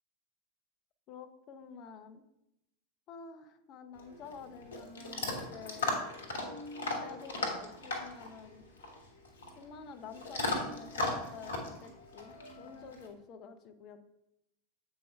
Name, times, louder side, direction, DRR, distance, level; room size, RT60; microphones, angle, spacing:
voice 1, 1.1-2.2 3.1-6.1 6.8-8.6 9.6-14.1, left 5 dB, 40° left, 8 dB, 0.7 m, -49 dB
Chewing mastication / Dog, 3.9-13.1, left 2 dB, 75° left, 1.2 m, -38 dB
7.5 x 4.5 x 3.4 m, 0.84 s
figure-of-eight pair, 85°, 0 cm